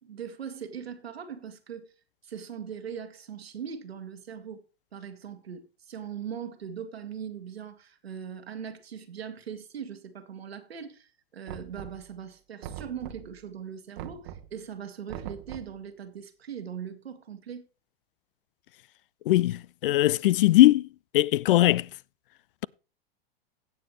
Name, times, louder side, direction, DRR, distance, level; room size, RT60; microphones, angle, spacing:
voice 1, 0.0-1.9 2.2-4.6 4.9-17.6, right 7 dB, 80° right, 1.8 m, -40 dB
Knock, 11.5-12.2 12.6-13.4 14.0-14.6 15.1-15.8, right 10 dB, 55° right, 1.1 m, -42 dB
voice 2, 19.3-20.9 21.1-21.9, left 15 dB, 60° left, 0.4 m, -20 dB
17.0 x 6.8 x 3.1 m
hypercardioid pair, 100°, 31 cm